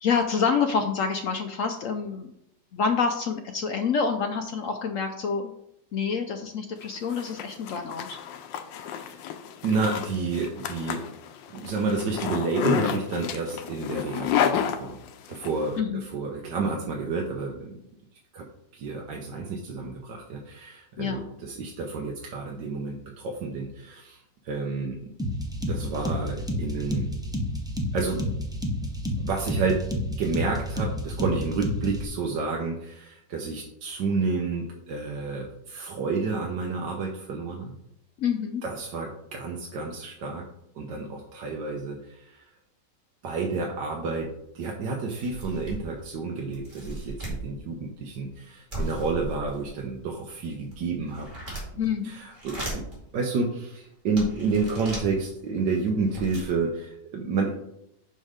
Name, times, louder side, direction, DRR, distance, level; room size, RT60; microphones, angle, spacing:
voice 1, 0.0-2.3 2.7-5.5 5.9-8.2 15.8-16.0 21.0-21.3 38.2-38.6 51.8-52.1, left 6 dB, 75° left, 6 dB, 0.7 m, -27 dB
Zipper (clothing), 6.8-15.5, left 9 dB, 90° left, 1.4 m, -31 dB
voice 2, 8.8-9.2 9.6-11.1 11.5-15.0 15.3-17.7 18.3-18.4 18.7-25.0 25.6-27.1 27.9-28.2 29.2-29.8 30.1-37.7 38.6-40.4 40.7-42.5 43.2-51.3 52.0-52.8 53.1-57.5, right 4 dB, 75° right, 0 dB, 1.5 m, -30 dB
sound 1, 25.2-32.1, left 1 dB, 5° right, 0.4 m, -30 dB
sound 2, 44.2-44.3 44.7-44.8 45.1-46.0 46.5-47.4 48.7-49.8 50.4-51.9 52.3-53.0 53.6-53.7 54.2-55.1 55.7-55.8 56.0-56.5, right 1 dB, 25° right, 2.3 m, -36 dB
5.6 x 5.4 x 5.0 m, 0.78 s
omnidirectional pair, 1.9 m